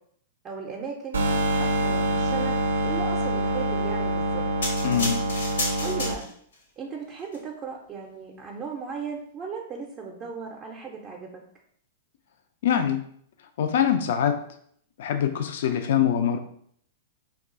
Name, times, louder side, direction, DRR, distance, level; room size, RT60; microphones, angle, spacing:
voice 1, 0.4-1.2 1.5-2.5 2.8-4.4 5.8-6.3 6.8-11.3, right 5 dB, 30° right, 0 dB, 0.5 m, -36 dB
sound 1, 1.1-6.1, right 1 dB, 85° right, 0.4 m, -25 dB
sound 2, 4.6-6.6 7.2-7.4, left 2 dB, 85° left, 0.9 m, -31 dB
voice 2, 4.8-5.2 12.6-13.0 13.6-14.4 15.0-16.4, left 9 dB, 65° left, 7 dB, 0.3 m, -23 dB
2.4 x 2.3 x 3.7 m, 0.64 s
hypercardioid pair, 110°, 0 cm